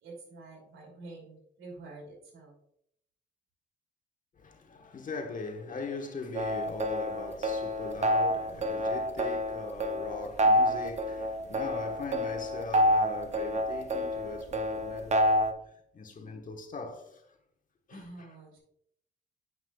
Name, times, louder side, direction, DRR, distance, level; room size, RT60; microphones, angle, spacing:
voice 1, 0.0-2.5 17.9-18.6, right 2 dB, 80° right, 2.6 m, -47 dB
voice 2, 4.4-17.3 17.9-18.3, left 4 dB, 40° left, 1.2 m, -41 dB
sound 1, 6.3-15.5, equal, 35° right, 0.8 m, -28 dB
7.8 x 5.9 x 2.3 m
cardioid pair, 90°, 20 cm